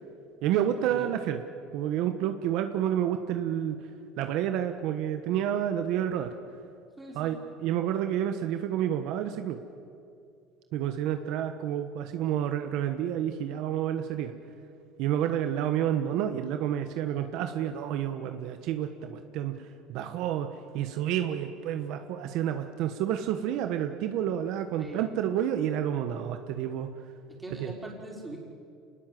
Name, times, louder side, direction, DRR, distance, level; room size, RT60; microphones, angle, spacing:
voice 1, 0.4-1.4 1.7-3.8 4.2-6.3 7.1-9.6 10.7-14.3 15.0-20.5 20.7-26.9 27.6-27.7, right 10 dB, 65° right, 7 dB, 1.3 m, -29 dB
voice 2, 7.0-7.4 24.8-25.0 27.4-28.4, right 2 dB, 10° right, -1 dB, 5.1 m, -41 dB
27.0 x 20.0 x 7.8 m, 2.5 s
supercardioid pair, 130°, 0 cm